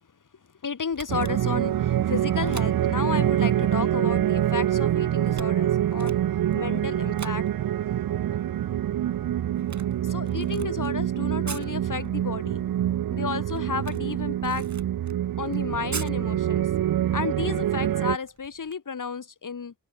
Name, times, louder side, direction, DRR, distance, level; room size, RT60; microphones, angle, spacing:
voice 1, 0.6-6.2 6.5-7.5 10.0-12.6 13.1-14.7 15.4-16.7 17.1-19.7, left 5 dB, 55° left, 2.3 m, -32 dB
Camera, 0.9-18.7, right 4 dB, 50° right, 5.1 m, -46 dB
sound 1, 1.1-18.2, right 11 dB, 65° right, 0.6 m, -26 dB
open air
cardioid pair, 65°, 37 cm